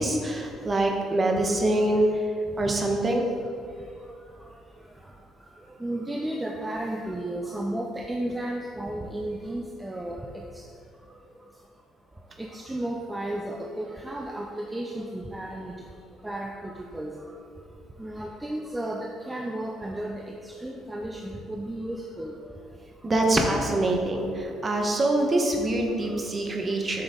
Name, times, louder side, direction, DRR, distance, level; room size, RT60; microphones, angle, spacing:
voice 1, 0.0-2.3 2.6-3.3 23.0-27.0, right 1 dB, 25° right, 2 dB, 1.1 m, -24 dB
voice 2, 5.8-10.2 12.4-15.7 16.2-17.1 18.0-22.3, right 1 dB, 10° right, 0 dB, 0.6 m, -33 dB
7.9 x 6.0 x 3.9 m, 2.4 s
cardioid pair, 115°, 0 cm